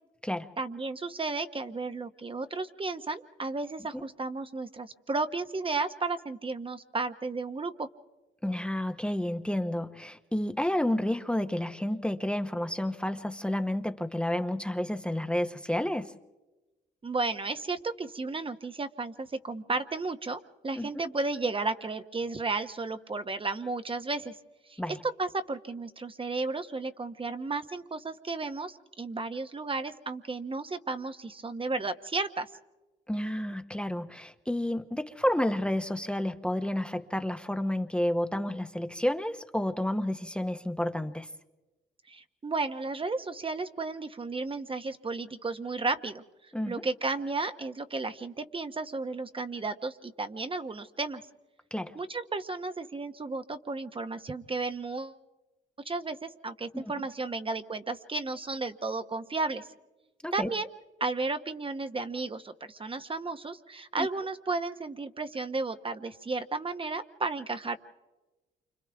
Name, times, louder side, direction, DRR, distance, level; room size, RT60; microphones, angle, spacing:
voice 1, 0.6-7.9 17.0-24.3 24.7-32.5 42.1-46.2 46.7-51.2 51.9-55.2 55.8-59.7 60.3-60.7 61.0-67.8, right 3 dB, 30° right, 9 dB, 1.1 m, -33 dB
voice 2, 8.4-16.1 20.8-21.0 24.8-25.0 33.1-41.3 46.5-46.8 51.7-51.9 56.7-56.9 60.2-60.5 64.0-64.1, left 1 dB, 5° left, 7 dB, 1.0 m, -30 dB
29.0 x 26.0 x 3.5 m, 1.1 s
supercardioid pair, 65°, 18 cm